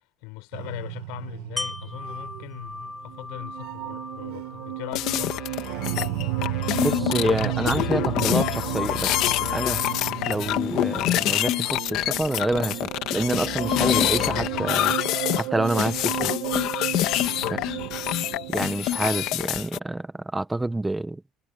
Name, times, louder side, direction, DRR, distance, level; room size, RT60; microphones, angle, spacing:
voice 1, 0.2-5.5 17.4-17.7, left 25 dB, 90° left, 4.2 m, -40 dB
sound 1, 0.5-19.4, right 19 dB, 85° right, 1.2 m, -33 dB
Wind chime, 1.6-7.4 7.8-7.9, left 2 dB, 10° left, 4.9 m, -40 dB
sound 2, 4.9-19.8, left 15 dB, 65° left, 1.7 m, -26 dB
voice 2, 6.8-9.8 10.3-15.0 15.3-16.3 18.5-21.2, right 2 dB, 10° right, 0.8 m, -27 dB
cardioid pair, 135°, 0 cm